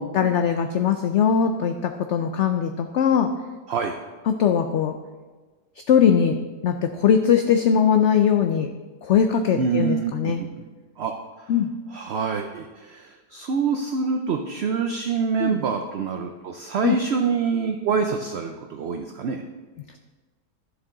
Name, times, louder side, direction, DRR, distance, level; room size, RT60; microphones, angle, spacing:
voice 1, 0.0-3.3 4.3-5.0 5.9-6.4 6.6-8.7 9.0-10.4 11.5-11.7 15.4-15.6 16.8-17.0, left 8 dB, 75° left, 7 dB, 0.6 m, -20 dB
voice 2, 9.6-10.6 11.0-11.1 11.4-11.5 11.9-19.4, right 5 dB, 65° right, 4 dB, 0.6 m, -26 dB
11.0 x 6.9 x 3.8 m, 1.3 s
omnidirectional pair, 1.7 m